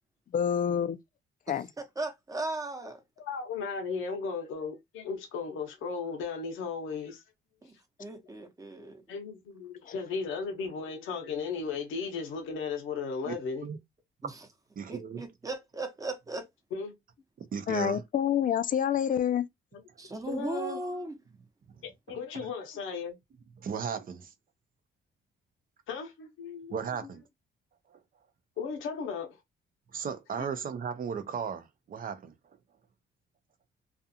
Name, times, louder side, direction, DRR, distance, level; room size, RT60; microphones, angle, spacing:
voice 1, 0.3-1.0 1.5-1.7 9.9-10.0 17.7-19.5, left 9 dB, 45° left, 0.4 m, -27 dB
voice 2, 1.5-3.0 7.6-7.7 8.0-9.0 14.2-14.4 14.9-16.5 20.0-21.2, right 2 dB, 15° right, 0.8 m, -37 dB
voice 3, 3.2-7.2 9.1-13.6 16.7-17.0 19.7-19.8 20.3-20.8 21.8-23.2 25.9-26.9 28.6-29.4, left 5 dB, 80° left, 0.8 m, -36 dB
voice 4, 14.8-15.3 17.4-18.0 22.1-22.2 23.6-24.3 26.7-27.2 29.9-32.3, right 6 dB, 45° right, 0.6 m, -35 dB
2.5 x 2.4 x 2.7 m
cardioid pair, 90°, 20 cm